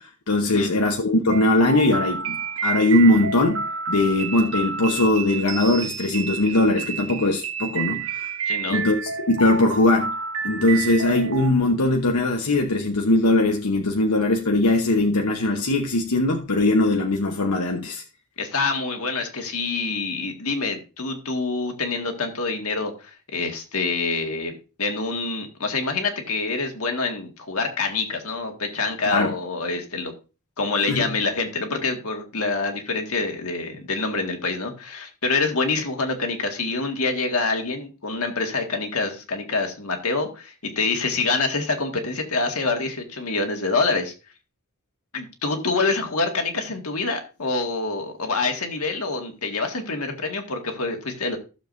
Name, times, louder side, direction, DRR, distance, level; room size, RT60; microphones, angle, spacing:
voice 1, 0.0-2.4 2.6-8.3 8.7-9.0 9.3-10.1 10.4-18.0 29.1-29.3 30.9-31.1, left 2 dB, 90° left, 1.0 m, -20 dB
sound 1, 1.3-11.5, right 5 dB, 65° right, 1.3 m, -30 dB
voice 2, 8.5-8.8 18.4-24.5 24.8-30.1 30.6-44.1 45.1-51.4, left 3 dB, 70° left, 1.9 m, -26 dB
15.0 x 7.1 x 2.6 m
head